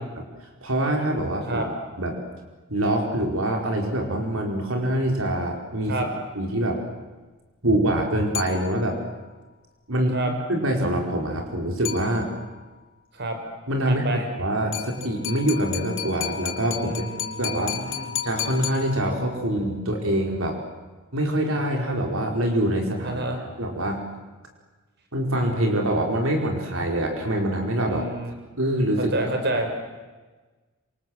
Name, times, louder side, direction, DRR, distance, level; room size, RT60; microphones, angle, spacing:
voice 1, 0.6-1.6 2.0-2.2 2.7-6.0 6.3-6.8 7.6-9.0 9.9-10.2 10.5-12.3 13.7-17.1 17.4-17.7 18.2-20.6 21.1-23.2 23.6-24.0 25.1-28.0 28.6-29.1, right 1 dB, 70° right, 2 dB, 4.8 m, -25 dB
sound 1, 8.3-9.1 11.8-12.6 14.7-19.4, left 10 dB, 60° left, 4.5 m, -33 dB
voice 2, 13.8-14.2 16.8-18.1 23.0-23.4 27.8-28.3 29.0-29.7, right 1 dB, 55° right, 5 dB, 4.8 m, -29 dB
27.5 x 27.5 x 7.9 m, 1.3 s
head